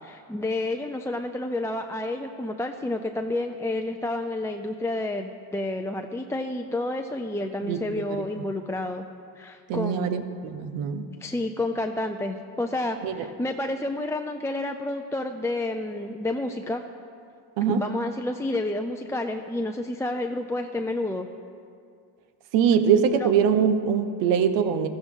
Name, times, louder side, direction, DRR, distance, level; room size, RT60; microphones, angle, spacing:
voice 1, 0.0-9.0 9.4-10.2 11.2-16.8 17.7-21.3 23.1-23.3, left 2 dB, 5° left, 4 dB, 0.5 m, -30 dB
voice 2, 7.6-8.0 9.7-11.1 13.0-13.1 17.6-17.8 22.5-24.9, right 7 dB, 75° right, 9 dB, 1.2 m, -23 dB
15.5 x 14.0 x 3.8 m, 2.3 s
cardioid pair, 105°, 44 cm